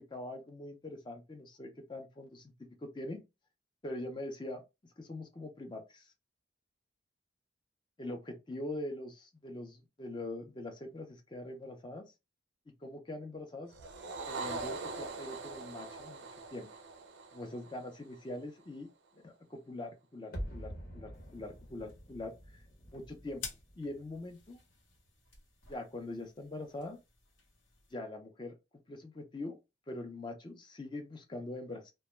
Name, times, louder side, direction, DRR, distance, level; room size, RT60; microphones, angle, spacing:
voice 1, 0.1-2.5 2.8-3.2 3.8-4.6 5.0-6.1 8.0-12.1 12.8-13.7 14.3-16.3 16.5-16.7 17.3-18.9 19.1-22.6 22.9-23.4 23.8-24.6 25.7-27.0 27.9-29.6 29.9-31.9, left 1 dB, 25° left, 0.4 m, -43 dB
sound 1, 13.7-18.3, right 3 dB, 65° right, 0.4 m, -42 dB
sound 2, 20.3-25.3 25.5-25.6, equal, 50° left, 0.9 m, -47 dB
sound 3, 21.1-27.9, left 5 dB, 75° left, 0.9 m, -53 dB
2.2 x 2.1 x 3.0 m
head